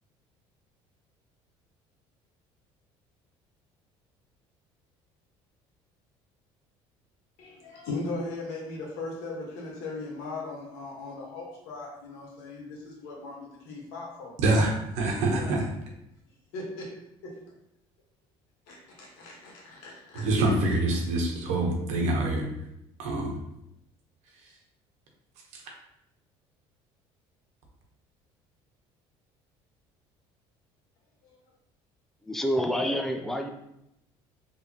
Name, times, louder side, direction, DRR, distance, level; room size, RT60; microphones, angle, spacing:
voice 1, 7.4-14.4 15.4-15.6 16.5-17.4 18.7-20.3 20.6-21.0 31.2-31.4, left 2 dB, 90° left, -2 dB, 1.5 m, -38 dB
voice 2, 14.4-15.6 20.1-22.5 23.0-23.3, right 2 dB, 80° right, 0 dB, 1.0 m, -25 dB
voice 3, 32.3-33.5, equal, 5° left, 4 dB, 0.4 m, -27 dB
4.4 x 3.3 x 2.9 m, 0.82 s
cardioid pair, 115°, 11 cm